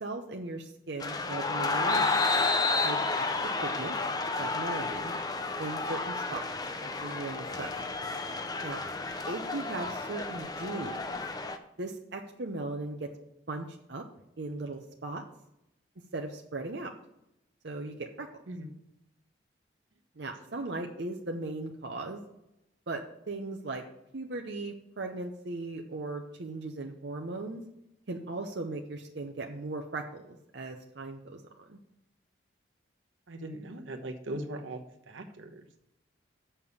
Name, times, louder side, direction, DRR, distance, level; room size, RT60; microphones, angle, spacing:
voice 1, 0.0-2.4 2.8-3.2 3.6-4.0 4.4-5.1 5.6-6.4 6.8-7.8 8.6-8.8 9.3-11.2 11.8-13.1 13.5-14.1 14.4-15.2 16.1-16.9 17.6-18.3 20.2-22.2 22.9-23.9 24.1-27.6 28.1-31.4 31.7-31.8, right 2 dB, 60° right, 2 dB, 0.7 m, -38 dB
sound 1, 1.0-11.6, left 3 dB, 20° left, 0.5 m, -31 dB
voice 2, 33.3-34.8 35.1-35.8, right 1 dB, 85° right, 5 dB, 1.0 m, -39 dB
6.8 x 5.6 x 7.0 m, 0.84 s
head